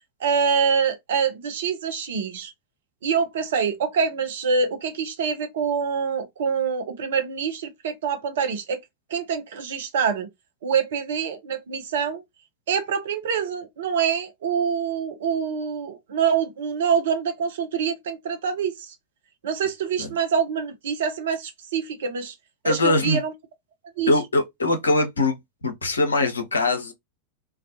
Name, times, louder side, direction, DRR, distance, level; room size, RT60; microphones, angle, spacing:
voice 1, 0.2-2.5 3.0-8.8 9.1-10.3 10.6-12.2 12.7-18.9 19.4-22.3 22.6-23.3 24.0-24.1, right 6 dB, 60° right, 0.6 m, -25 dB
voice 2, 22.6-23.2 24.1-25.4 25.6-26.9, left 2 dB, 75° left, 0.6 m, -22 dB
2.3 x 2.3 x 2.5 m
figure-of-eight pair, 90°, 0 cm